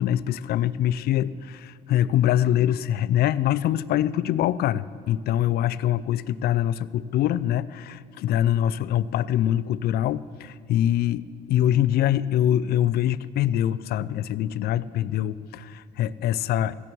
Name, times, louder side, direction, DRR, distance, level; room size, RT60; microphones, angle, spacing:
voice 1, 0.0-16.7, left 11 dB, 65° left, 17 dB, 0.5 m, -24 dB
16.5 x 14.0 x 4.6 m, 2.4 s
cardioid pair, 110°, 17 cm